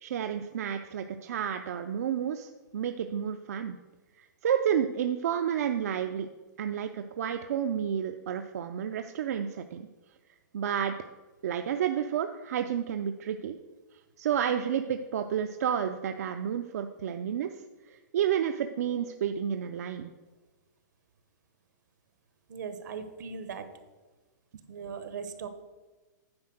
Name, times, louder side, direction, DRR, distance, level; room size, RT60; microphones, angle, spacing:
voice 1, 0.0-3.8 4.2-6.3 6.6-9.9 10.5-10.9 11.4-13.6 14.2-17.5 17.8-20.1, right 9 dB, 55° right, 7 dB, 0.4 m, -30 dB
voice 2, 22.5-23.7 24.7-25.5, right 6 dB, 75° right, 9 dB, 1.1 m, -39 dB
9.6 x 4.5 x 6.3 m, 1.2 s
hypercardioid pair, 180°, 10 cm